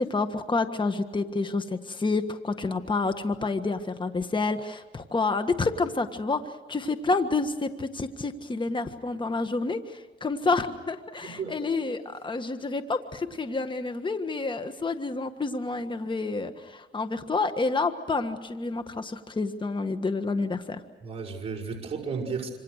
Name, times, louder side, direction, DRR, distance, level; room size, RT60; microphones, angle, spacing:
voice 1, 0.0-20.8, left 3 dB, 25° left, 9 dB, 1.6 m, -29 dB
voice 2, 11.2-11.6 21.0-22.5, right 5 dB, 30° right, -4 dB, 5.6 m, -33 dB
27.0 x 26.5 x 6.5 m, 1.3 s
cardioid pair, 90°, 20 cm